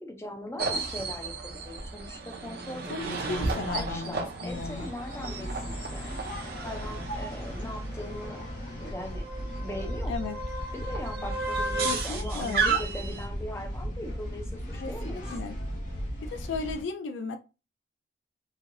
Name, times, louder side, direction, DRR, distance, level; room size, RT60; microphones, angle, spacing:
voice 1, 0.0-8.5 8.8-10.1 10.7-15.2, left 1 dB, 15° left, 0.5 m, -40 dB
sound 1, 0.6-13.2, right 4 dB, 50° right, 0.6 m, -34 dB
voice 2, 2.9-4.9 10.1-10.4 11.8-12.8 14.8-15.6 16.2-17.4, left 4 dB, 75° left, 0.4 m, -35 dB
sound 2, 4.4-16.8, equal, 45° left, 1.1 m, -36 dB
3.0 x 2.7 x 2.5 m
head